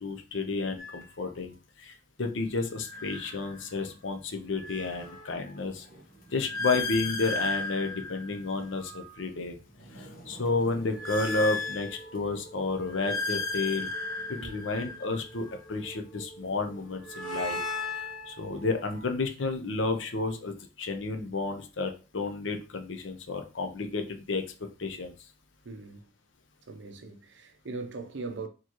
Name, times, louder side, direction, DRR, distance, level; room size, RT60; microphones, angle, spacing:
voice 1, 0.0-5.9 6.3-9.5 10.0-13.9 14.3-17.6 17.9-24.4 24.8-25.1, left 3 dB, 70° left, 0.7 m, -31 dB
sound 1, 0.8-1.0 2.7-3.9 4.3-9.2 9.7-12.3 12.8-15.7 16.7-19.0, left 2 dB, 45° left, 1.2 m, -36 dB
sound 2, 10.6-18.6, right 2 dB, 20° left, 0.4 m, -50 dB
voice 2, 25.6-26.1 26.7-28.5, right 3 dB, 60° right, 0.6 m, -40 dB
4.5 x 3.0 x 3.0 m
head